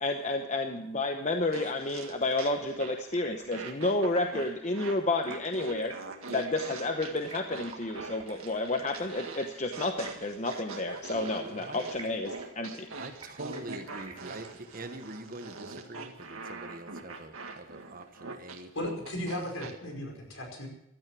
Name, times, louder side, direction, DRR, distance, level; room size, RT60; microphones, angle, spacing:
voice 1, 0.0-5.9 6.3-12.9, left 2 dB, 35° left, 5 dB, 0.9 m, -31 dB
sound 1, 1.5-3.1 3.5-19.7, right 3 dB, 90° right, 2.0 m, -43 dB
Stream, 1.8-15.2, right 3 dB, 25° right, 2.8 m, -52 dB
voice 2, 11.5-12.1 12.9-18.7 19.3-19.5, right 2 dB, 40° right, 8 dB, 1.3 m, -44 dB
voice 3, 18.7-20.7, left 1 dB, 70° left, 2 dB, 5.2 m, -36 dB
16.0 x 12.5 x 6.1 m, 0.81 s
head